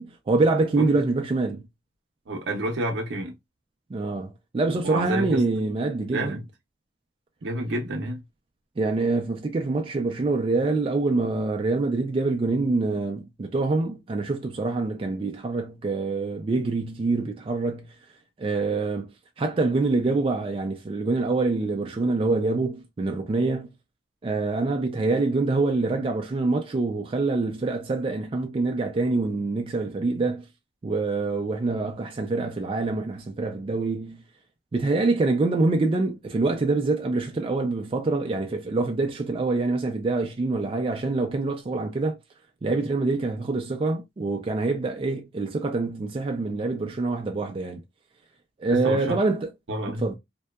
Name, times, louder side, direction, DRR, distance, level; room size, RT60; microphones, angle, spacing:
voice 1, 0.0-1.6 3.9-6.4 8.8-17.9 18.4-23.7 24.2-30.4 30.8-34.2 34.7-42.2 42.6-47.8 48.6-49.5 50.0-50.1, right 3 dB, 30° right, 0.3 m, -25 dB
voice 2, 2.3-3.3 4.8-5.4 6.1-6.4 7.4-8.2 48.7-49.2 49.7-50.1, right 1 dB, 75° right, 0.6 m, -29 dB
2.7 x 2.2 x 2.2 m
head